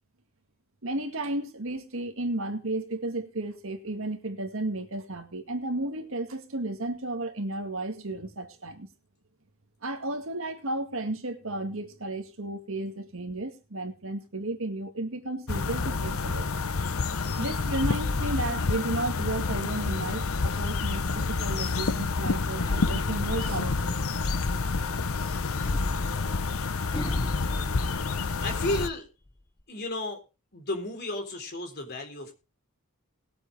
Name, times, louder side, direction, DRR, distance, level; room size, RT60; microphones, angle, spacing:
voice 1, 0.8-8.9 9.8-16.5 17.4-24.0, right 2 dB, 70° right, 2.0 m, -33 dB
sound 1, 15.5-28.9, left 4 dB, 80° left, 0.9 m, -28 dB
sound 2, 22.6-25.0 25.6-28.6 29.1-29.6, left 1 dB, 25° left, 0.8 m, -38 dB
voice 2, 28.4-29.1 29.7-30.2 30.5-32.3, left 1 dB, 50° left, 3.7 m, -32 dB
20.0 x 7.9 x 3.4 m
head